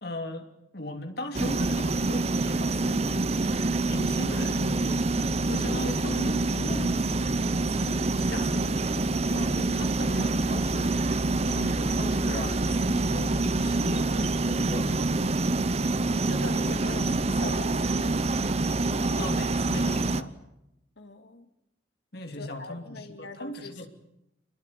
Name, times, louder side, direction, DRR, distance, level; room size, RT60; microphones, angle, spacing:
voice 1, 0.0-3.3 3.8-5.1 5.4-7.1 7.8-8.7 9.3-11.0 11.4-15.1 19.2-20.4 22.1-23.9, left 1 dB, 50° left, 3.1 m, -38 dB
sound 1, 1.3-20.2, right 2 dB, 30° right, 0.9 m, -26 dB
voice 2, 8.3-8.6 11.6-11.8 16.3-18.2 21.0-21.5 22.4-23.9, left 3 dB, 70° left, 2.7 m, -42 dB
26.5 x 21.5 x 8.5 m
head